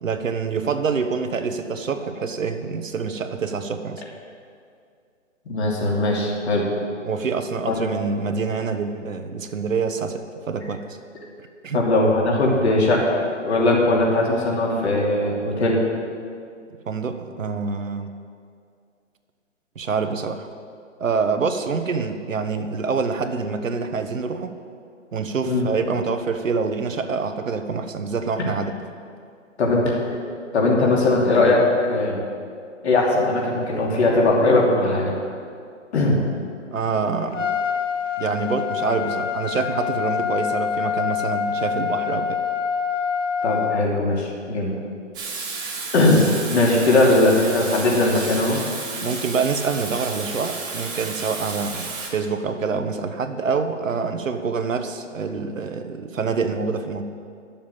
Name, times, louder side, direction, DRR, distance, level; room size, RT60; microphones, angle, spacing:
voice 1, 0.0-4.0 7.0-10.9 11.6-11.9 16.9-18.1 19.7-20.5 21.0-24.5 25.1-28.8 36.7-37.5 38.2-42.4 46.9-47.0 49.0-57.0, right 5 dB, 80° right, 8 dB, 1.2 m, -26 dB
voice 2, 5.5-6.7 7.7-7.8 11.7-13.1 13.4-15.8 25.5-25.7 29.6-30.2 30.5-32.2 32.8-35.1 35.9-36.2 43.4-44.7 45.9-46.2 46.5-48.6, left 2 dB, 60° left, -2 dB, 2.9 m, -19 dB
Trumpet, 37.3-43.9, left 8 dB, 75° left, 1.0 m, -26 dB
Water tap faucet / Sink (filling or washing), 45.1-52.1, right 4 dB, 10° right, 1.2 m, -32 dB
11.5 x 7.2 x 7.4 m, 2.3 s
hypercardioid pair, 155°, 38 cm